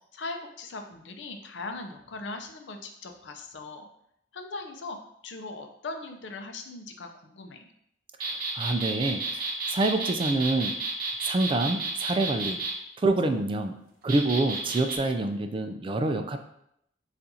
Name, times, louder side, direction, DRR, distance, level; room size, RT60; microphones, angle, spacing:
voice 1, 0.1-3.9 4.3-5.0 5.2-7.6, left 3 dB, 80° left, 5 dB, 0.5 m, -39 dB
voice 2, 8.2-10.7 11.2-12.6 13.0-13.8 14.0-16.4, right 2 dB, 30° right, 6 dB, 0.3 m, -27 dB
sound 1, 8.2-12.7 14.1-15.0, right 3 dB, 55° right, 0.8 m, -31 dB
6.9 x 2.5 x 2.7 m, 0.75 s
head